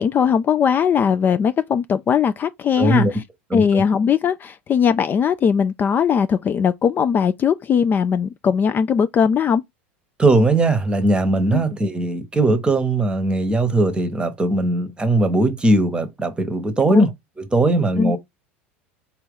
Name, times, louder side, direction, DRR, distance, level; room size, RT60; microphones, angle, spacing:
voice 1, 0.0-3.2 3.5-9.6 11.5-11.6 16.9-17.1 18.0-18.1, left 7 dB, 30° left, 0.3 m, -19 dB
voice 2, 2.8-3.1 3.5-3.8 10.2-18.2, right 2 dB, 15° right, 1.0 m, -19 dB
4.3 x 2.8 x 3.7 m
hypercardioid pair, 80°, 7 cm